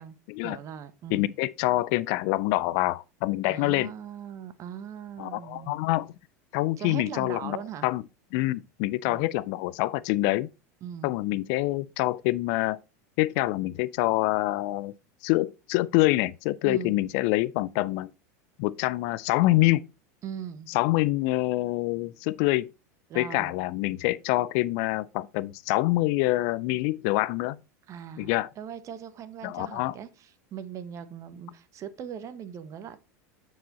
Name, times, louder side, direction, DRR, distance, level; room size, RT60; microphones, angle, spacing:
voice 1, 0.4-1.3 3.5-5.8 6.8-7.9 9.1-9.3 10.8-11.1 16.6-16.9 20.2-20.7 23.1-23.5 27.9-33.0, right 8 dB, 35° right, 0.9 m, -40 dB
voice 2, 1.1-3.9 5.2-6.1 6.5-7.6 7.8-8.0 8.3-10.5 11.0-12.8 13.2-14.9 15.2-18.1 18.6-19.9 20.7-22.7 23.2-27.6 28.2-28.5 29.4-29.9, left 18 dB, 60° left, 0.4 m, -26 dB
7.3 x 4.7 x 4.0 m
supercardioid pair, 115°, 9 cm